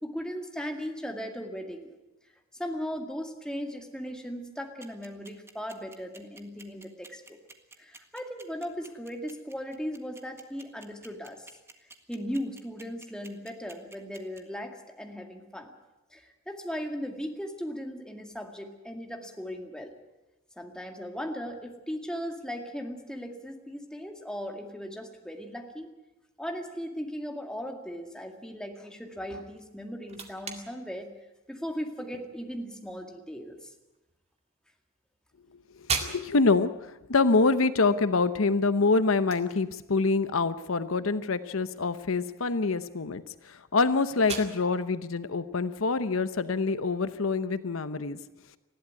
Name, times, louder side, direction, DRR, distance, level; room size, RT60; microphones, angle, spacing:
voice 1, 0.0-1.9 2.5-7.4 7.8-11.5 12.1-15.7 16.1-19.9 20.6-25.9 26.4-31.1 31.5-33.7, equal, 5° left, 3 dB, 2.1 m, -37 dB
sound 1, 4.8-14.4, right 3 dB, 15° right, 1.6 m, -49 dB
sound 2, 29.5-47.2, right 5 dB, 30° right, 2.2 m, -43 dB
voice 2, 36.0-48.2, left 3 dB, 75° left, 13 dB, 0.8 m, -26 dB
20.0 x 15.0 x 9.7 m, 1.0 s
head